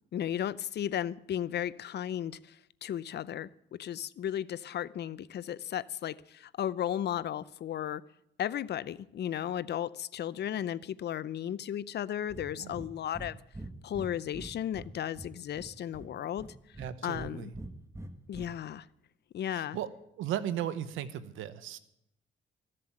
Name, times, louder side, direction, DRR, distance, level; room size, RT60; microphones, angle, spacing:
voice 1, 0.1-8.0 8.4-13.4 13.8-17.5 18.3-18.9 19.3-19.8, left 10 dB, 55° left, 18 dB, 0.6 m, -35 dB
Breathing, 12.3-12.5 12.7-12.9 13.1-13.3 13.5-14.9 15.1-16.1 16.4-17.3 17.5-18.4, right 1 dB, 15° right, 1.4 m, -43 dB
voice 2, 16.8-17.5 19.5-19.9 20.2-21.8, right 10 dB, 90° right, 14 dB, 1.0 m, -36 dB
15.0 x 7.6 x 8.8 m, 0.79 s
cardioid pair, 90°, 20 cm